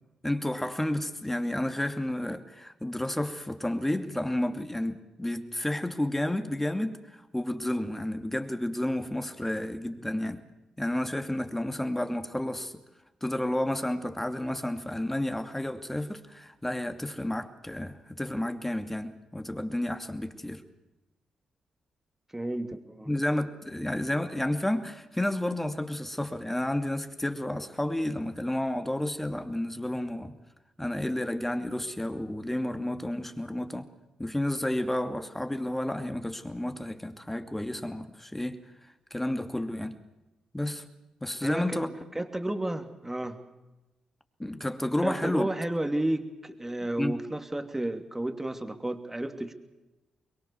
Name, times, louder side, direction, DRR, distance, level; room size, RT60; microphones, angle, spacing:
voice 1, 0.2-10.4 10.8-12.8 13.2-20.6 23.1-30.4 30.8-33.9 34.2-38.6 39.1-40.0 40.5-40.8 41.2-41.9 44.4-45.5 47.0-47.2, left 1 dB, 10° left, 8 dB, 2.6 m, -31 dB
voice 2, 22.3-23.1 41.4-41.8 42.1-43.4 45.0-49.5, right 1 dB, 15° right, 7 dB, 2.8 m, -32 dB
24.5 x 22.0 x 7.2 m, 1.0 s
hypercardioid pair, 40°, 2 cm